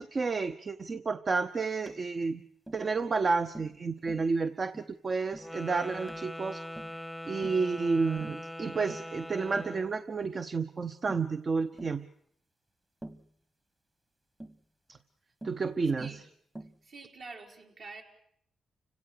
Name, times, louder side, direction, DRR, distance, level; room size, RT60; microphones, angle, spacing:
voice 1, 0.0-2.4 2.7-6.6 6.9-12.0 14.9-15.0 15.4-16.2, right 4 dB, 45° right, 9 dB, 0.8 m, -31 dB
Tap, 1.9-2.0 2.7-2.9 3.5-3.8 4.1-4.3 4.7-4.9 5.3-5.5 6.1-6.3 6.8-7.0 7.4-7.7 8.2-8.5 8.9-9.1 9.6-9.8 10.2-10.4 11.1-11.3 11.8-12.0 13.0-13.3 14.4-14.6 15.4-15.6 16.0-16.2 16.6-16.8, right 1 dB, 15° right, 1.2 m, -47 dB
Wind instrument woodwind instrument, 5.4-10.0, equal, ahead, 0.9 m, -42 dB
voice 2, 16.8-18.0, right 3 dB, 65° right, 0 dB, 4.3 m, -46 dB
29.5 x 17.0 x 6.7 m, 0.67 s
cardioid pair, 70°, 0 cm